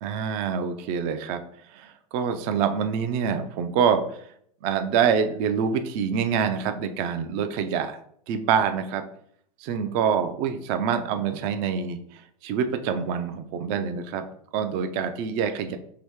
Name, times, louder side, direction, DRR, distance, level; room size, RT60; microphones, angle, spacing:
voice 1, 0.0-1.4 1.7-4.2 4.6-8.0 8.3-9.0 9.6-14.3 14.5-15.8, right 7 dB, 50° right, 8 dB, 0.4 m, -26 dB
2.9 x 2.7 x 3.4 m, 0.66 s
hypercardioid pair, 110°, 20 cm